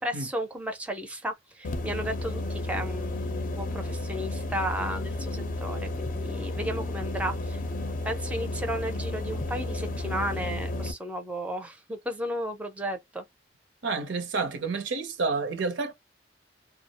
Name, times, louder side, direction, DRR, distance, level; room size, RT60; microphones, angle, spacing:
voice 1, 0.0-7.6 8.0-13.2, equal, 10° right, 0.5 m, -34 dB
sound 1, 1.6-10.9, left 2 dB, 45° left, 0.5 m, -32 dB
voice 2, 13.8-15.9, right 4 dB, 75° right, 0.6 m, -29 dB
2.2 x 2.0 x 2.8 m
head